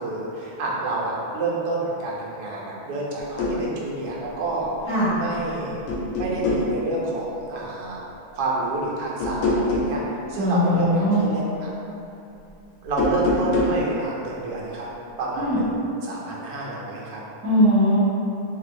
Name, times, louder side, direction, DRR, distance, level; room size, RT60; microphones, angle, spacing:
voice 1, 0.0-5.8 6.2-8.0 8.3-10.0 10.3-11.7 12.8-14.9 15.2-15.7 16.0-17.2, right 2 dB, 90° right, -4 dB, 1.3 m, -28 dB
sound 1, 3.2-3.6 5.2-5.5 5.9-6.7 9.2-10.0 12.9-13.8, left 2 dB, 90° left, 1.2 m, -24 dB
voice 2, 10.4-11.2 15.4-15.6 17.4-18.0, equal, 5° left, -14 dB, 1.3 m, -20 dB
4.0 x 2.5 x 2.5 m, 2.9 s
omnidirectional pair, 1.7 m